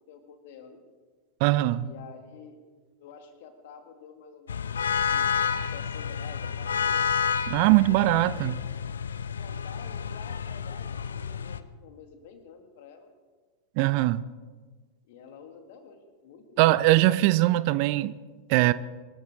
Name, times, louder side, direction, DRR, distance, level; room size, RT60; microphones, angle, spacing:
voice 1, 0.1-0.8 1.8-2.6 3.0-7.1 7.5-8.4 9.4-13.1 15.0-16.7, left 6 dB, 50° left, 2.2 m, -49 dB
voice 2, 1.4-1.9 7.5-8.5 13.8-14.2 16.6-18.1 18.5-18.7, right 17 dB, 45° right, 0.5 m, -21 dB
sound 1, 4.5-11.6, left 7 dB, 70° left, 0.6 m, -30 dB
24.5 x 13.5 x 3.8 m
figure-of-eight pair, 90°, 0 cm